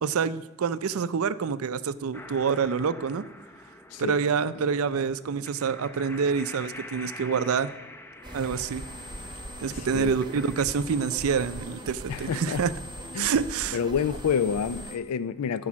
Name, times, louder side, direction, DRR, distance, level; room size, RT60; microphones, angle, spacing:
voice 1, 0.0-3.2 4.0-7.7 8.3-8.8 9.6-12.7 13.2-13.8, right 6 dB, 70° right, 0.4 m, -27 dB
sound 1, 2.1-10.7, left 1 dB, 10° left, 0.5 m, -46 dB
sound 2, 8.2-15.0, equal, 20° right, 0.9 m, -40 dB
voice 2, 9.7-10.1 12.1-12.6 13.1-13.3 13.7-15.7, left 7 dB, 85° left, 0.4 m, -28 dB
12.5 x 4.8 x 6.1 m
head